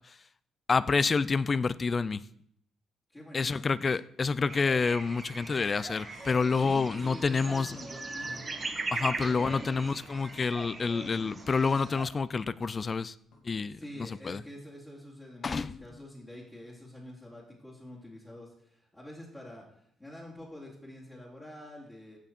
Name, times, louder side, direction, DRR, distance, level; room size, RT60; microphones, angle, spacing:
voice 1, 0.7-2.2 3.3-7.8 8.9-13.1 13.4-13.8 14.2-14.4 15.4-15.8, left 4 dB, 35° left, 0.4 m, -28 dB
voice 2, 3.1-3.9 6.6-8.5 9.0-9.8 13.7-19.6 20.0-22.2, left 1 dB, 20° left, 3.0 m, -46 dB
sound 1, 4.5-12.2 12.4-12.5 13.3-13.8, left 2 dB, 75° left, 2.4 m, -55 dB
sound 2, 4.5-12.1, right 3 dB, 30° right, 1.6 m, -40 dB
15.5 x 5.8 x 4.4 m
cardioid pair, 90°, 0 cm